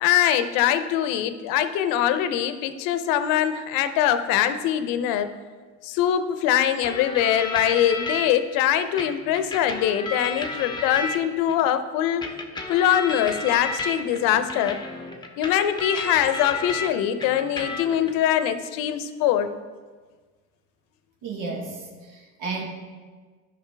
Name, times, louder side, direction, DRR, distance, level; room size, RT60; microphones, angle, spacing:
voice 1, 0.0-5.3 5.8-12.3 12.7-14.8 15.4-19.5, left 10 dB, 75° left, 10 dB, 0.7 m, -23 dB
sound 1, 6.8-8.3 9.0-11.6 12.2-16.9 17.2-18.1, left 3 dB, 15° left, 0.8 m, -32 dB
voice 2, 21.2-22.7, right 3 dB, 75° right, -2 dB, 1.6 m, -33 dB
12.5 x 5.4 x 3.4 m, 1.5 s
cardioid pair, 120°, 34 cm